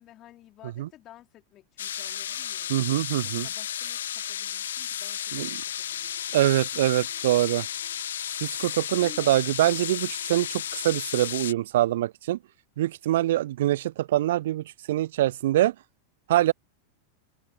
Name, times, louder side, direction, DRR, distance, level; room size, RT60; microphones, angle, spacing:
voice 1, 0.0-6.4 9.0-9.4, left 14 dB, 35° left, 4.4 m, -52 dB
sound 1, 1.8-11.5, left 10 dB, 65° left, 0.5 m, -33 dB
voice 2, 2.7-3.5 5.3-5.5 6.3-7.7 8.4-12.4 12.8-15.7 16.3-16.5, right 14 dB, 55° right, 0.4 m, -24 dB
figure-of-eight pair, 90°, 0 cm